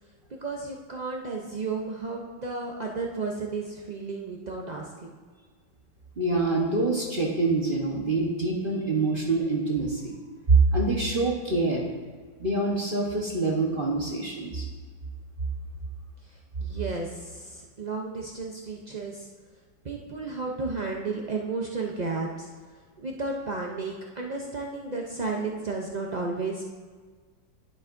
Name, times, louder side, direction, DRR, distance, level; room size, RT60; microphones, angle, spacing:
voice 1, 0.4-5.1 16.6-19.3 19.8-22.5 23.0-26.6, right 3 dB, 65° right, -1 dB, 0.4 m, -33 dB
voice 2, 6.2-10.1 10.5-11.8 12.4-14.6, right 3 dB, 35° right, -2 dB, 1.1 m, -25 dB
11.0 x 10.5 x 2.6 m, 1.5 s
omnidirectional pair, 1.8 m